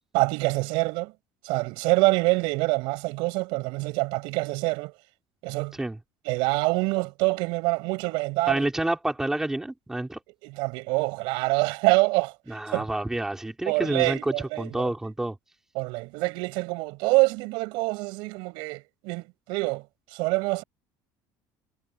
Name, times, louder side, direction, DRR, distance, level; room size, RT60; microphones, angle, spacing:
voice 1, 0.1-1.1 1.4-4.9 5.4-5.7 6.3-8.7 10.4-12.3 12.7-12.9 13.7-14.8 15.8-19.8 20.1-20.6, right 25 dB, 80° right, 6.9 m, -25 dB
voice 2, 8.5-10.2 12.5-15.4, right 1 dB, 5° right, 4.1 m, -29 dB
cardioid pair, 165°, 8 cm